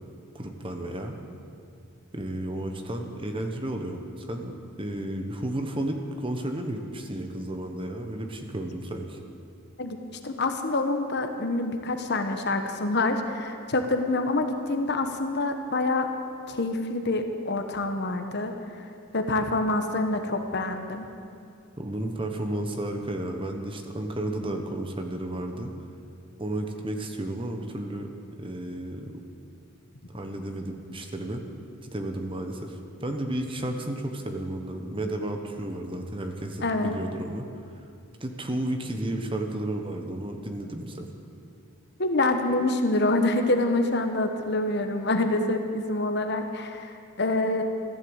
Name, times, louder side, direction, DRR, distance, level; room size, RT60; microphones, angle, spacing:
voice 1, 0.3-1.1 2.1-9.2 21.8-25.7 26.4-29.2 30.1-31.4 31.8-37.5 38.2-41.1, right 1 dB, 25° right, 4 dB, 1.2 m, -33 dB
voice 2, 10.2-16.1 16.5-18.8 19.1-21.1 36.6-36.9 42.0-47.6, left 2 dB, 50° left, 6 dB, 1.2 m, -26 dB
15.0 x 11.5 x 8.0 m, 2.5 s
head